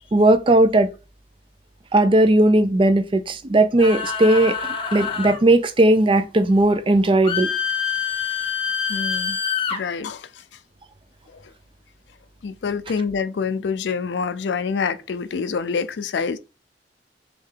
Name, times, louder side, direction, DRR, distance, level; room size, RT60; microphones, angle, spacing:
voice 1, 0.1-0.9 1.9-7.5, right 1 dB, 30° right, 0.4 m, -17 dB
sound 1, 3.8-5.4 7.2-9.8, left 7 dB, 30° left, 0.8 m, -26 dB
voice 2, 8.9-9.4 9.7-10.3 11.3-11.4 12.4-16.4, left 5 dB, 80° left, 0.4 m, -26 dB
3.5 x 3.2 x 3.7 m
head